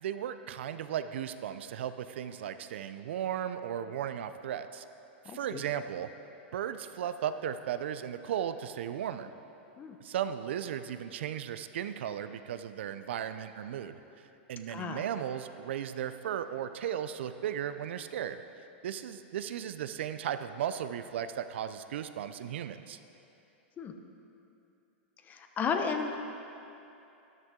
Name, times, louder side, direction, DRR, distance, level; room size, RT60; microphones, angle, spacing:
voice 1, 0.0-4.8 5.3-6.1 6.5-9.3 10.0-14.0 14.5-18.4 18.8-23.0, right 9 dB, 75° right, 11 dB, 0.5 m, -36 dB
voice 2, 5.2-5.6 9.8-10.0 14.7-15.0 23.8-23.9 25.3-26.1, left 5 dB, 25° left, 5 dB, 0.9 m, -33 dB
13.0 x 11.0 x 3.8 m, 2.8 s
hypercardioid pair, 125°, 6 cm